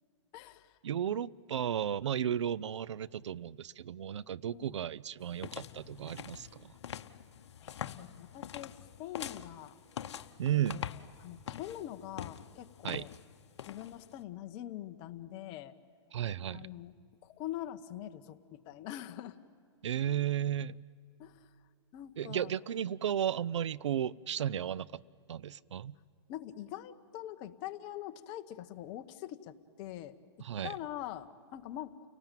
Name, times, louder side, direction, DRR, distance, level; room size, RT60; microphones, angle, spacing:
voice 1, 0.3-0.7 1.0-1.2 4.5-4.8 7.6-9.8 10.5-13.1 13.6-15.8 16.5-16.9 17.2-19.4 21.2-21.5 21.9-22.5 26.3-32.1, left 12 dB, 35° left, 1.1 m, -44 dB
voice 2, 0.8-6.7 10.4-10.8 12.8-13.0 16.1-16.7 19.8-20.8 22.2-25.0 25.3-25.9 30.4-30.8, right 10 dB, 85° right, 0.5 m, -34 dB
sound 1, 5.2-14.2, left 9 dB, 70° left, 1.0 m, -45 dB
30.0 x 18.5 x 9.1 m
hypercardioid pair, 145°, 15 cm